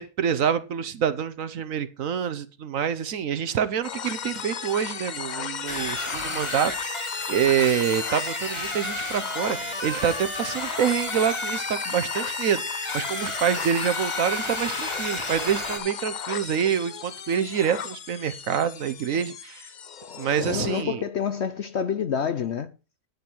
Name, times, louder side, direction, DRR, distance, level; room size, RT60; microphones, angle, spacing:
voice 1, 0.0-19.7 20.1-21.0, right 8 dB, 60° right, 1.1 m, -26 dB
sound 1, 3.8-20.8, left 7 dB, 75° left, 0.4 m, -35 dB
sound 2, 5.7-15.8, left 1 dB, 20° left, 2.1 m, -32 dB
voice 2, 20.4-22.7, left 7 dB, 60° left, 0.8 m, -28 dB
10.5 x 9.4 x 4.5 m
omnidirectional pair, 1.7 m